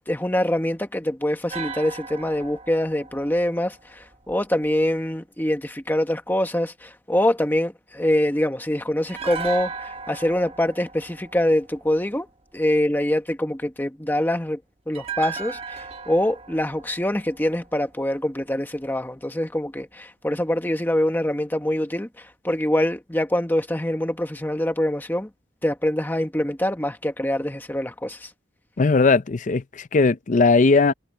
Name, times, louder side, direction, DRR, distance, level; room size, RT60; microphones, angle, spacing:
voice 1, 0.1-12.3 12.5-14.6 14.9-25.3 25.6-28.3, left 1 dB, 10° left, 1.2 m, -24 dB
sound 1, 1.5-4.7 9.1-12.3 14.9-18.2 18.4-18.6, right 6 dB, 30° right, 1.5 m, -37 dB
voice 2, 28.8-30.9, left 3 dB, 40° left, 0.5 m, -18 dB
head